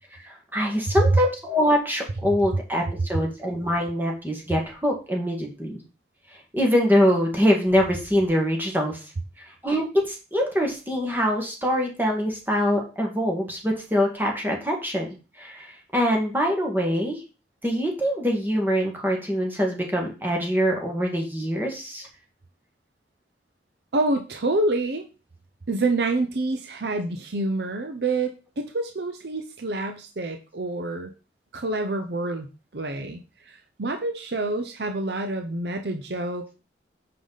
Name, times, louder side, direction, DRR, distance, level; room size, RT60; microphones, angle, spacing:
voice 1, 0.2-5.8 6.5-9.0 9.6-15.1 15.4-17.2 17.6-22.1, equal, 10° right, 0 dB, 1.7 m, -24 dB
voice 2, 23.9-25.1 25.7-31.1 31.5-32.5 32.7-36.5, right 2 dB, 70° right, 6 dB, 0.8 m, -27 dB
8.4 x 5.8 x 4.0 m, 0.32 s
head